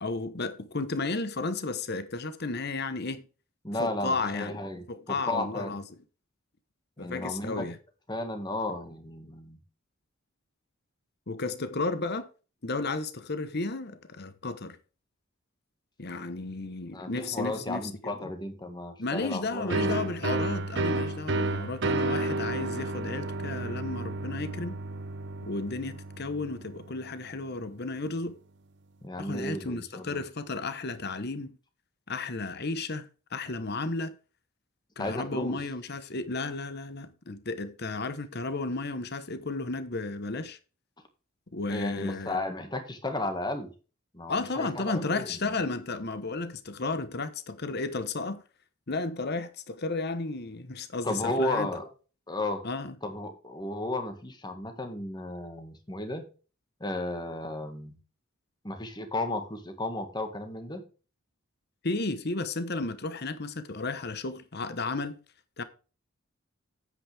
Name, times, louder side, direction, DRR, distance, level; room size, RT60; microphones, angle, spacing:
voice 1, 0.0-3.2 3.8-4.6 4.9-5.8 7.0-7.8 11.3-12.3 12.6-14.8 16.0-17.9 18.2-18.3 19.0-24.8 25.4-28.3 29.2-31.6 32.1-34.2 35.0-40.6 41.5-42.4 44.3-48.4 48.9-51.7 52.6-53.0 61.8-65.2 65.6-65.7, left 3 dB, 50° left, 1.1 m, -33 dB
voice 2, 3.6-5.8 7.0-7.7 8.1-9.6 16.9-20.0 29.0-30.2 35.0-35.6 41.7-43.7 44.1-45.6 51.0-51.9 52.3-52.6 53.0-56.3 56.8-58.0 58.6-60.8, left 2 dB, 20° left, 1.8 m, -34 dB
sound 1, 19.7-27.2, right 2 dB, 55° right, 0.8 m, -31 dB
9.4 x 8.5 x 3.5 m
head